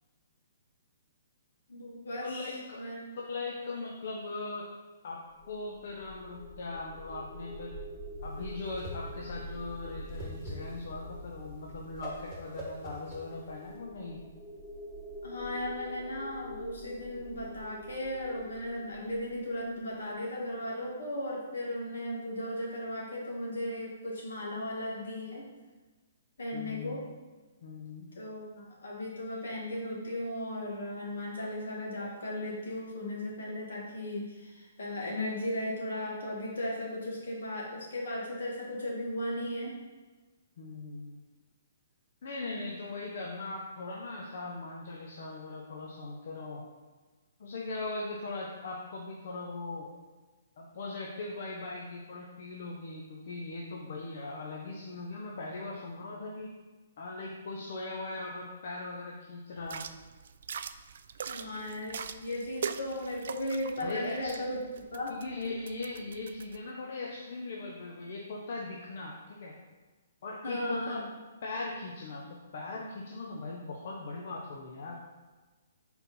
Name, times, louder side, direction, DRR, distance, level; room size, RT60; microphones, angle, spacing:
voice 1, 1.7-2.4 2.8-3.0 15.2-25.5 26.4-27.0 28.2-39.7 61.3-64.6 64.9-65.1 70.4-71.2, left 1 dB, 75° left, -3 dB, 2.0 m, -36 dB
voice 2, 2.2-2.8 3.2-4.7 5.0-5.2 5.5-7.7 8.2-14.2 26.5-27.0 27.6-28.1 40.6-41.2 42.2-46.6 47.4-49.9 50.6-56.5 57.0-59.8 63.8-64.4 65.1-69.5 70.2-71.0 71.4-75.0, left 3 dB, 60° left, -2 dB, 0.8 m, -39 dB
sound 1, 5.3-20.4, left 1 dB, 30° left, 0.9 m, -46 dB
Whoosh swoosh swish, 8.3-13.8, right 1 dB, 20° right, 1.4 m, -45 dB
sound 2, 59.6-66.6, right 7 dB, 65° right, 0.3 m, -42 dB
4.4 x 4.2 x 5.4 m, 1.3 s
hypercardioid pair, 140°, 0 cm